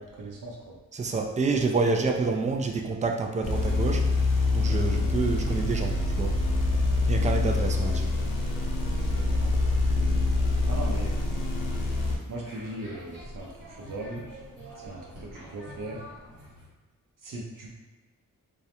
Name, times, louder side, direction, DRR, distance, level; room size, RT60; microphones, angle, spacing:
voice 1, 0.0-0.8 7.8-7.9 9.0-9.6 10.7-11.2 12.3-14.3 14.8-16.0 17.2-17.8, right 2 dB, 65° right, -2 dB, 0.7 m, -39 dB
voice 2, 0.9-4.1 4.5-6.3 7.1-8.1, right 4 dB, 20° right, 3 dB, 0.3 m, -28 dB
sound 1, 3.4-12.2, left 2 dB, 60° left, 0.6 m, -25 dB
sound 2, 11.3-16.7, equal, 85° right, 1.0 m, -47 dB
2.3 x 2.1 x 2.8 m, 1.2 s
cardioid pair, 50°, 35 cm